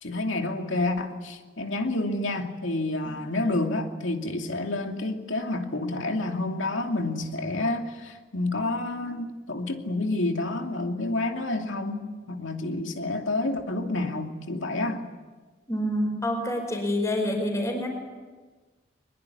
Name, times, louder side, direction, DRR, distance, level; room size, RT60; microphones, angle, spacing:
voice 1, 0.0-15.0, left 2 dB, 90° left, 4 dB, 2.7 m, -29 dB
voice 2, 15.7-17.9, left 1 dB, 15° left, 2 dB, 4.9 m, -27 dB
22.5 x 21.5 x 9.9 m, 1.4 s
head